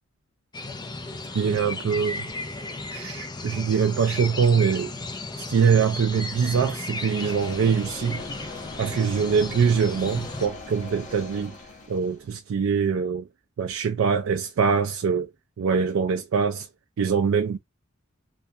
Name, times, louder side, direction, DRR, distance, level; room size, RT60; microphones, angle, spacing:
sound 1, 0.5-10.5, left 2 dB, 20° left, 0.4 m, -35 dB
voice 1, 1.3-2.3 2.9-4.9 5.4-8.2 8.8-11.5 11.9-13.3 13.6-15.3 15.6-16.7 17.0-17.6, right 6 dB, 70° right, 0.3 m, -23 dB
sound 2, 7.0-12.2, left 3 dB, 35° left, 0.8 m, -40 dB
2.4 x 2.1 x 2.6 m
head